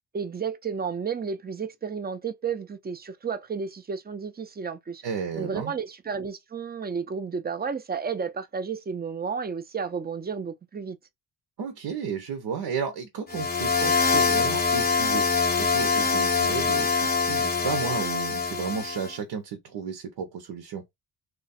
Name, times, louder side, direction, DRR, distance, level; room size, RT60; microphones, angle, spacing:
voice 1, 0.1-5.0 5.4-11.0, right 6 dB, 25° right, 0.5 m, -32 dB
voice 2, 5.0-5.7 11.6-20.8, right 6 dB, 80° right, 0.9 m, -33 dB
sound 1, 13.3-19.1, left 4 dB, 25° left, 0.7 m, -24 dB
3.0 x 2.3 x 4.1 m
cardioid pair, 100°, 41 cm